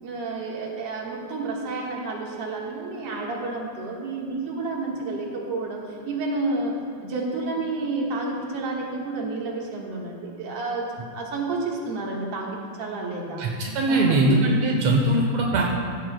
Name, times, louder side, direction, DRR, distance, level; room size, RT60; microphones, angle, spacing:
voice 1, 0.0-6.8 7.0-13.5 13.9-14.3, right 3 dB, 50° right, -2 dB, 2.0 m, -30 dB
voice 2, 13.4-15.6, right 2 dB, 70° right, -1 dB, 1.6 m, -21 dB
16.0 x 15.0 x 2.3 m, 2.3 s
omnidirectional pair, 4.4 m